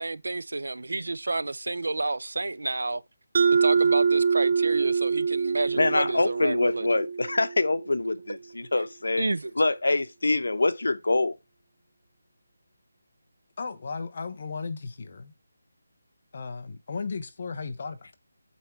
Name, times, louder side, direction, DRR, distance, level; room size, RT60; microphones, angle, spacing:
voice 1, 0.0-3.0 3.5-6.9 9.2-9.5, right 2 dB, 85° right, 0.5 m, -30 dB
Mallet percussion, 3.3-7.9, right 5 dB, 30° right, 0.4 m, -25 dB
voice 2, 5.8-9.3 9.6-11.4, left 2 dB, 85° left, 0.9 m, -25 dB
voice 3, 13.6-15.3 16.3-18.2, left 4 dB, 30° left, 0.9 m, -35 dB
8.3 x 3.6 x 4.4 m
figure-of-eight pair, 180°, 0 cm